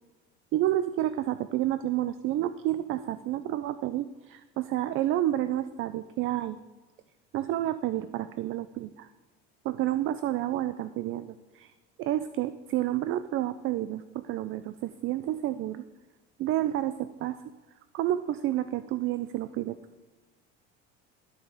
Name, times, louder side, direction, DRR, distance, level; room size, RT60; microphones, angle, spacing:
voice 1, 0.5-6.6 7.3-9.1 9.6-11.7 12.0-15.8 16.4-17.4 17.9-19.8, right 13 dB, 45° right, 13 dB, 0.4 m, -30 dB
13.5 x 5.0 x 3.7 m, 1.1 s
supercardioid pair, 105°, 29 cm